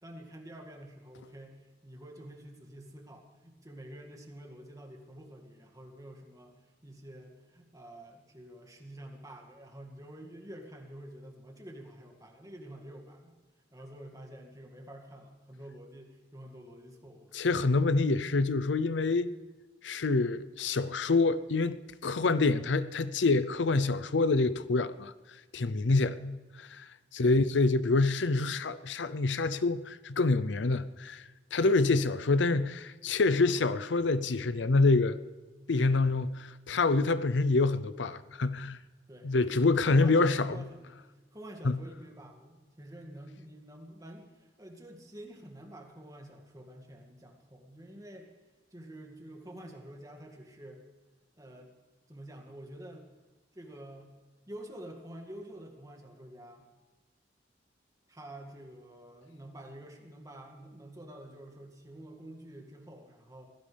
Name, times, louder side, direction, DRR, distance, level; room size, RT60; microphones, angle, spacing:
voice 1, 0.0-6.6 6.8-13.3 13.7-17.3 27.1-27.4 39.1-39.3 39.7-40.9 41.3-48.3 48.7-50.8 51.4-51.7 52.1-53.1 53.5-54.1 54.5-56.7 58.1-63.4, right 1 dB, 20° right, 2.2 m, -48 dB
voice 2, 17.3-19.3 19.8-21.8 22.0-25.1 25.5-26.9 27.1-31.2 31.5-35.2 35.7-38.8 39.2-40.6 41.6-41.8, left 3 dB, 75° left, 0.6 m, -26 dB
24.5 x 16.5 x 3.4 m
head